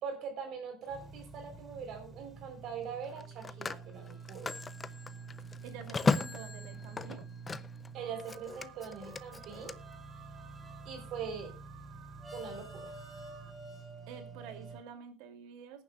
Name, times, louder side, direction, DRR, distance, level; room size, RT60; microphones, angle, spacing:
voice 1, 0.0-4.6 7.9-9.7 10.8-11.5 12.3-12.9, right 6 dB, 55° right, 4 dB, 4.0 m, -42 dB
Telephone, 0.8-1.1 3.0-7.9 8.2-9.7, left 4 dB, 20° left, 0.6 m, -36 dB
sound 1, 0.9-14.8, right 3 dB, 15° right, 3.3 m, -48 dB
voice 2, 5.6-7.2 14.1-15.8, right 7 dB, 90° right, 7 dB, 2.9 m, -48 dB
Alarm, 7.9-13.5, right 12 dB, 70° right, 2.8 m, -56 dB
20.5 x 10.5 x 2.4 m, 0.31 s
cardioid pair, 150°, 0 cm